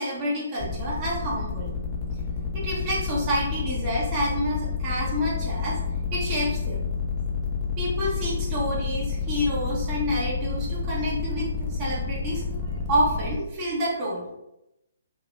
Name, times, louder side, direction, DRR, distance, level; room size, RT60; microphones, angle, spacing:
voice 1, 0.0-1.7 2.5-5.8 6.1-6.8 7.8-14.2, equal, 35° right, -6 dB, 1.0 m, -28 dB
sound 1, 0.6-13.4, left 5 dB, 30° left, 0.8 m, -29 dB
3.2 x 2.9 x 2.5 m, 0.86 s
figure-of-eight pair, 135°, 0 cm